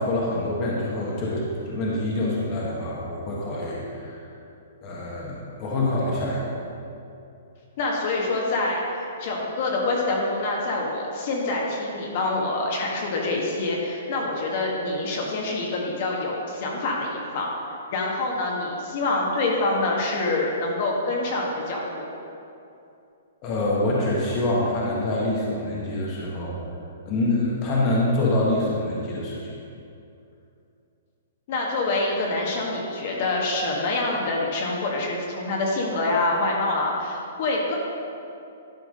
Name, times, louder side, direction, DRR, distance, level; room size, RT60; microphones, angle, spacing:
voice 1, 0.0-4.3 4.8-6.6 23.4-26.5 27.0-29.5, left 1 dB, 30° left, -5 dB, 1.5 m, -26 dB
voice 2, 7.8-17.5 17.9-22.1 31.5-37.7, left 2 dB, 45° left, -2 dB, 1.5 m, -26 dB
11.5 x 4.9 x 5.2 m, 2.7 s
hypercardioid pair, 160°, 0 cm